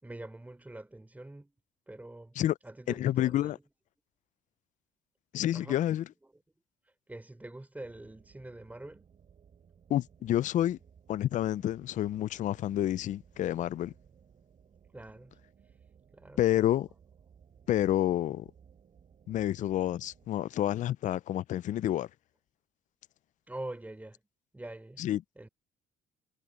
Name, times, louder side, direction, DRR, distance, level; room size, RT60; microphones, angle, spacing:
voice 1, 0.0-1.5 1.9-2.4 2.6-3.6 5.5-5.8 6.8-9.1 14.9-16.7 23.5-24.2 24.5-25.0 25.4-25.5, right 1 dB, 10° right, 5.0 m, -45 dB
voice 2, 3.0-3.6 5.3-6.0 9.9-10.8 11.1-13.9 16.4-16.9 17.7-18.5 19.3-22.1 25.0-25.2, left 12 dB, 50° left, 0.4 m, -29 dB
sound 1, 7.8-20.3, right 7 dB, 40° right, 3.8 m, -60 dB
cardioid pair, 110°, 17 cm